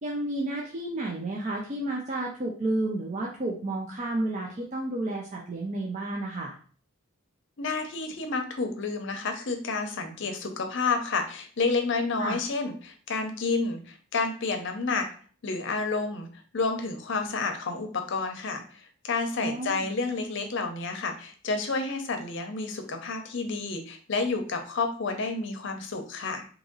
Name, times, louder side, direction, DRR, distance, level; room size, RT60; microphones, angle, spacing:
voice 1, 0.0-6.6 12.2-12.4 19.4-19.9, right 2 dB, 35° right, -2 dB, 0.5 m, -31 dB
voice 2, 7.6-15.1 15.4-16.3 16.5-26.5, left 4 dB, 60° left, 5 dB, 0.6 m, -30 dB
2.9 x 2.6 x 3.8 m, 0.42 s
head